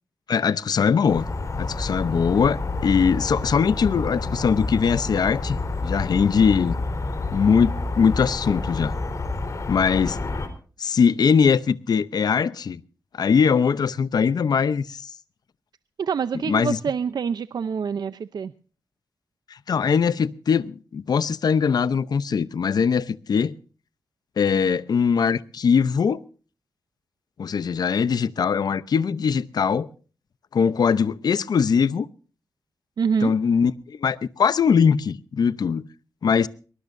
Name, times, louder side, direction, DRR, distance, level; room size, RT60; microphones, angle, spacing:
voice 1, 0.3-1.2 1.6-6.8 7.3-9.0 9.7-10.2 10.8-12.8 13.1-15.1 16.5-16.8 19.5-23.5 24.4-26.2 27.4-29.9 30.5-32.1 33.2-35.9 36.2-36.5, left 6 dB, 70° left, 0.7 m, -21 dB
sound 1, 1.1-10.5, left 3 dB, 50° left, 4.0 m, -29 dB
voice 2, 16.0-18.5 33.0-33.3, right 6 dB, 75° right, 0.6 m, -26 dB
22.5 x 20.0 x 2.6 m
wide cardioid pair, 100°, 7 cm